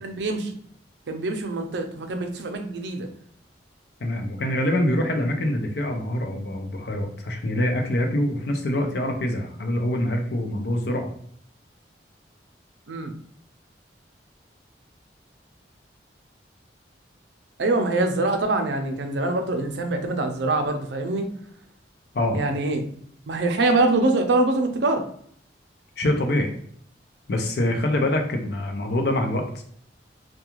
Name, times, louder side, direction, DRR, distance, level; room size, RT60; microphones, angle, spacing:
voice 1, 0.0-0.5 1.1-3.1 12.9-13.1 17.6-21.3 22.3-22.8 23.3-25.0, right 2 dB, 75° right, 5 dB, 0.5 m, -24 dB
voice 2, 4.0-11.1 22.1-22.4 26.0-26.5 27.3-29.4, left 1 dB, 65° left, 4 dB, 0.5 m, -25 dB
2.3 x 2.3 x 2.9 m, 0.62 s
head